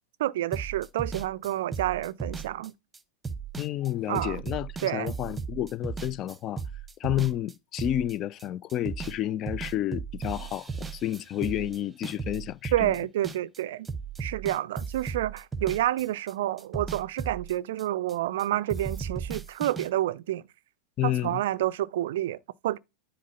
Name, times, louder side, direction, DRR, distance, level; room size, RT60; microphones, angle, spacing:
voice 1, 0.2-2.7 4.1-4.4 4.8-5.1 12.7-13.9 14.2-20.4 21.0-22.8, right 13 dB, 55° right, 0.4 m, -29 dB
sound 1, 0.5-9.2 9.5-13.6 13.8-18.4 18.7-19.9, right 5 dB, 10° right, 0.9 m, -36 dB
voice 2, 3.6-6.6 7.0-12.9 21.0-21.4, left 12 dB, 35° left, 0.4 m, -30 dB
10.0 x 4.1 x 5.6 m
figure-of-eight pair, 90°, 0 cm